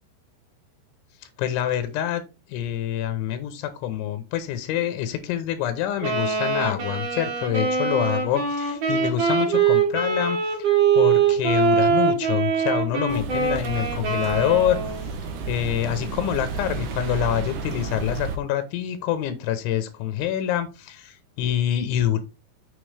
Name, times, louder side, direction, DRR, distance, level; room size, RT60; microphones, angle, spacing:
voice 1, 1.4-2.2 2.5-15.1 15.5-22.2, left 11 dB, 85° left, 9 dB, 3.3 m, -26 dB
Wind instrument woodwind instrument, 6.0-15.1, right 6 dB, 50° right, 3.5 m, -23 dB
sound 1, 13.1-18.4, right 4 dB, 75° right, 1.9 m, -32 dB
7.6 x 6.7 x 3.3 m, 0.29 s
omnidirectional pair, 5.3 m